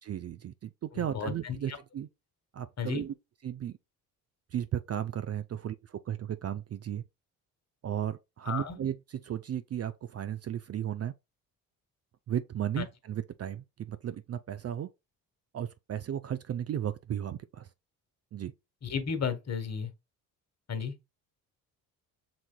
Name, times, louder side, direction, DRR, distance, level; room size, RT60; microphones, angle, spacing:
voice 1, 0.0-2.1 2.5-3.1 3.4-3.8 4.5-7.0 7.8-11.1 12.3-14.9 15.5-17.7 18.3-18.5, right 10 dB, 35° right, 0.5 m, -35 dB
voice 2, 0.9-1.8 2.8-3.1 8.5-8.8 12.8-12.9 18.8-19.9 20.7-20.9, left 6 dB, 35° left, 1.3 m, -33 dB
5.9 x 3.9 x 2.2 m
hypercardioid pair, 55°, 43 cm